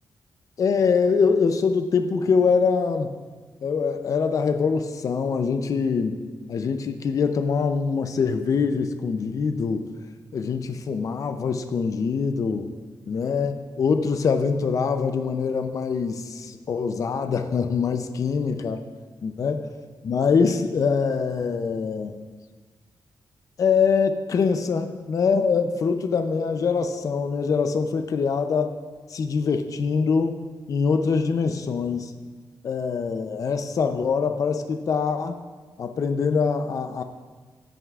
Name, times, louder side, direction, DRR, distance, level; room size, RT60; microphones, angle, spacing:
voice 1, 0.6-3.1 3.6-6.2 6.5-9.9 10.3-12.7 13.1-18.8 19.2-19.6 20.0-22.2 23.6-28.8 29.1-30.4 30.7-32.1 32.6-35.4 35.8-37.0, left 5 dB, 50° left, 7 dB, 0.5 m, -24 dB
15.0 x 9.1 x 2.4 m, 1.4 s
wide cardioid pair, 155°, 7 cm